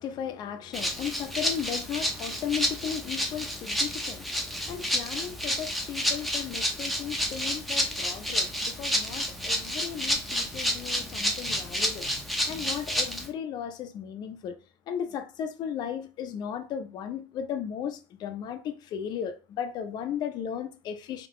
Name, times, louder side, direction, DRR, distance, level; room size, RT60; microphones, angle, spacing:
voice 1, 0.0-12.1 12.5-14.6 14.9-21.3, left 8 dB, 40° left, 0.6 m, -35 dB
Rattle (instrument), 0.7-13.3, equal, ahead, 0.6 m, -30 dB
3.7 x 2.9 x 4.8 m
cardioid pair, 145°, 11 cm